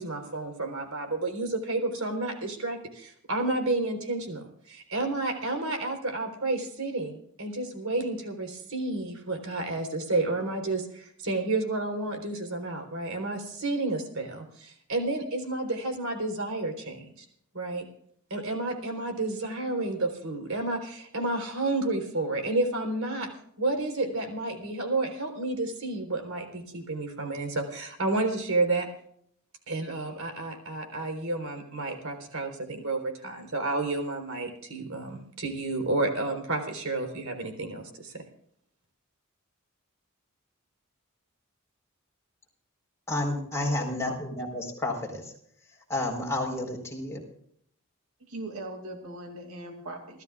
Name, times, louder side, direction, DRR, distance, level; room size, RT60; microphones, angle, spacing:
voice 1, 0.0-17.2 17.5-17.8 18.3-23.3 23.6-28.9 29.7-38.2, right 2 dB, 75° right, 5 dB, 3.9 m, -31 dB
voice 2, 43.1-45.3 45.9-47.2, left 1 dB, 15° left, 0 dB, 4.2 m, -31 dB
voice 3, 48.2-50.2, right 1 dB, 90° right, 3 dB, 2.6 m, -40 dB
29.5 x 14.0 x 2.4 m, 0.66 s
head